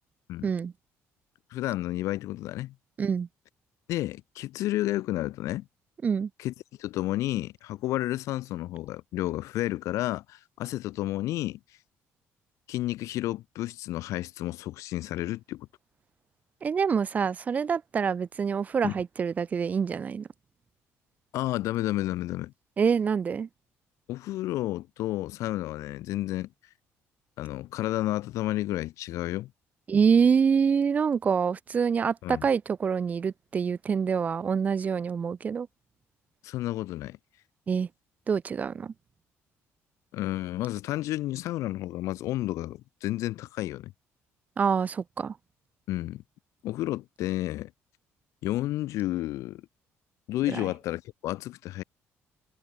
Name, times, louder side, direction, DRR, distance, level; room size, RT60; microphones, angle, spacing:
voice 1, 0.4-0.7 3.0-3.3 6.0-6.3 16.6-20.3 22.8-23.5 29.9-35.7 37.7-37.9 38.3-38.9 44.6-45.3 50.5-50.6, right 6 dB, 30° right, 1.6 m, -26 dB
voice 2, 1.5-2.7 3.9-5.7 6.4-6.5 6.8-11.6 12.7-15.7 18.8-18.9 21.3-22.5 24.1-26.5 27.4-29.5 32.2-32.5 36.4-37.2 40.1-43.9 45.9-46.2 46.6-47.7 48.4-49.6 50.3-51.8, left 15 dB, 75° left, 1.3 m, -31 dB
cardioid pair, 155°, 5 cm